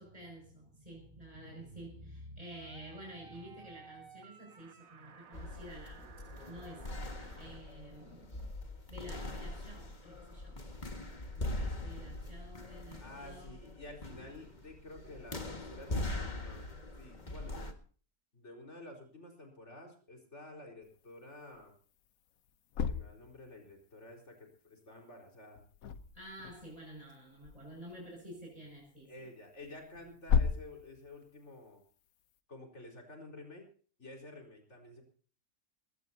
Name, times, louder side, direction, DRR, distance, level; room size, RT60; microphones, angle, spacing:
voice 1, 0.0-8.5 8.9-10.6 11.8-13.6 26.1-29.3, equal, 25° right, -1 dB, 6.3 m, -50 dB
sound 1, 2.5-7.6, right 5 dB, 65° right, 1.8 m, -56 dB
sound 2, 5.3-17.7, left 2 dB, 30° left, 1.9 m, -42 dB
voice 2, 13.0-16.7 17.0-17.8 18.3-21.7 22.9-25.6 29.1-31.8 32.5-33.7 34.0-35.0, left 2 dB, 50° left, 2 dB, 4.7 m, -51 dB
sound 3, 20.8-21.0 21.5-21.7 22.5-23.8 25.6-27.1 27.4-28.1 28.8-28.9 29.6-31.2, left 6 dB, 75° left, 1.3 m, -35 dB
20.5 x 17.5 x 2.8 m, 0.41 s
omnidirectional pair, 1.5 m